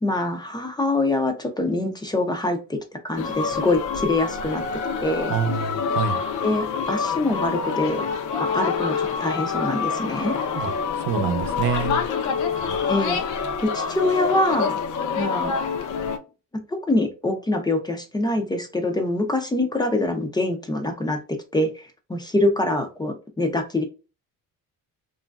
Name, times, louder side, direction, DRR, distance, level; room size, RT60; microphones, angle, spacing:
voice 1, 0.0-2.8 3.0-4.6 5.0-5.3 6.4-8.1 8.4-10.3 12.9-13.2 13.6-14.8 15.2-15.5 16.7-21.2 21.5-21.8 22.1-23.8, left 2 dB, 15° left, 0.4 m, -24 dB
sound 1, 3.1-16.2, left 5 dB, 60° left, 0.6 m, -26 dB
voice 2, 5.3-6.2 10.5-10.7 11.0-12.0 12.6-12.8, right 7 dB, 80° right, 0.6 m, -26 dB
3.0 x 2.5 x 2.2 m
cardioid pair, 150°, 34 cm